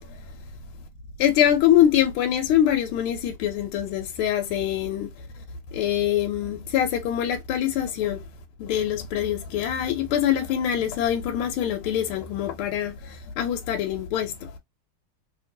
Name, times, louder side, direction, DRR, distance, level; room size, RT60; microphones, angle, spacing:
voice 1, 1.2-5.1 5.7-8.2 8.6-14.5, left 10 dB, 85° left, 1.5 m, -24 dB
3.1 x 2.9 x 2.6 m
omnidirectional pair, 2.3 m